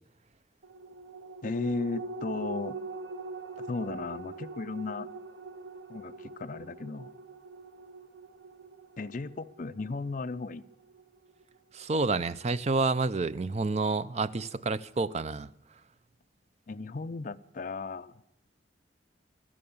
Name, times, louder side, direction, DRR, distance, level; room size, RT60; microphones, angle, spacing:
sound 1, 0.6-11.4 11.8-11.9, right 3 dB, 85° right, 1.3 m, -43 dB
voice 1, 1.4-2.8 3.7-5.1 5.9-7.1 9.0-10.6 16.7-18.1, left 3 dB, 45° left, 0.5 m, -35 dB
voice 2, 11.7-15.5, right 3 dB, 35° right, 0.5 m, -29 dB
16.0 x 12.5 x 7.2 m
head